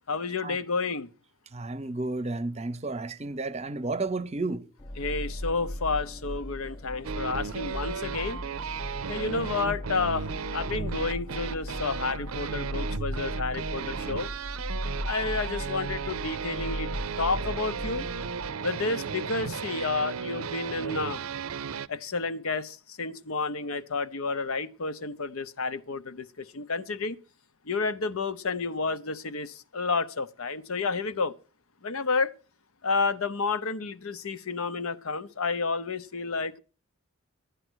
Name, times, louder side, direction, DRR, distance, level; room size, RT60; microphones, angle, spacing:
voice 1, 0.1-1.1 5.0-8.4 9.1-14.3 15.0-16.9 17.2-18.1 18.6-21.2 21.9-27.2 27.7-31.3 31.8-32.3 32.8-36.6, left 4 dB, 85° left, 0.8 m, -30 dB
voice 2, 1.5-4.7, right 2 dB, 30° right, 0.6 m, -32 dB
sound 1, 4.8-18.5, left 1 dB, 30° left, 0.5 m, -37 dB
sound 2, 7.0-21.9, right 6 dB, 90° right, 0.6 m, -35 dB
12.0 x 9.4 x 6.2 m
head